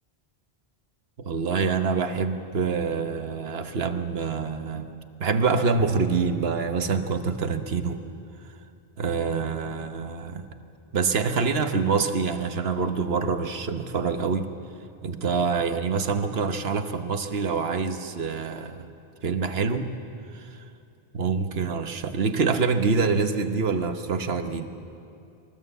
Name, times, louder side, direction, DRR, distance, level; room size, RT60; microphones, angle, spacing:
voice 1, 1.2-4.9 5.2-8.0 9.0-10.4 10.9-14.5 15.0-18.9 19.2-19.9 20.3-20.6 21.1-24.7, right 5 dB, 75° right, 8 dB, 1.3 m, -26 dB
22.0 x 19.0 x 8.1 m, 2.6 s
omnidirectional pair, 1.0 m